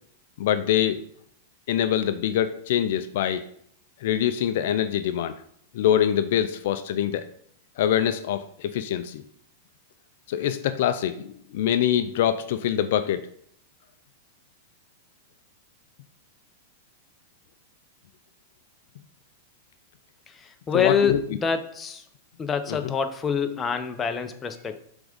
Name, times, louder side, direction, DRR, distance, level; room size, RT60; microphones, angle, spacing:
voice 1, 0.4-1.0 1.7-3.4 4.0-5.4 5.7-7.3 7.8-9.2 10.3-13.3 20.7-21.2 22.7-22.9, left 10 dB, 65° left, 10 dB, 0.4 m, -24 dB
voice 2, 20.4-22.0 22.4-24.8, left 6 dB, 20° left, 7 dB, 0.7 m, -26 dB
6.1 x 3.6 x 5.1 m, 0.64 s
hypercardioid pair, 110°, 0 cm